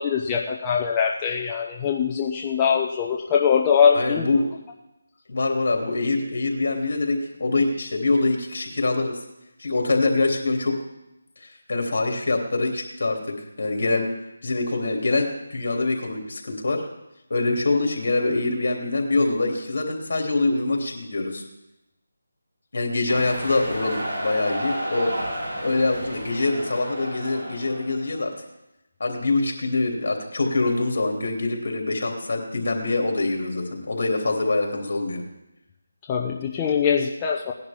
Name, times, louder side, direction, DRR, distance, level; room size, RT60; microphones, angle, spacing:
voice 1, 0.0-4.3 36.1-37.5, left 7 dB, 20° left, -1 dB, 0.7 m, -22 dB
voice 2, 3.9-4.4 5.3-9.2 9.6-10.7 11.4-14.1 14.4-16.8 17.3-21.4 22.7-25.1 25.6-28.3 29.0-35.2, left 2 dB, 60° left, 2 dB, 3.2 m, -24 dB
sound 1, 23.1-28.2, equal, 60° right, 6.1 m, -32 dB
18.5 x 10.5 x 3.7 m, 0.91 s
figure-of-eight pair, 165°, 0 cm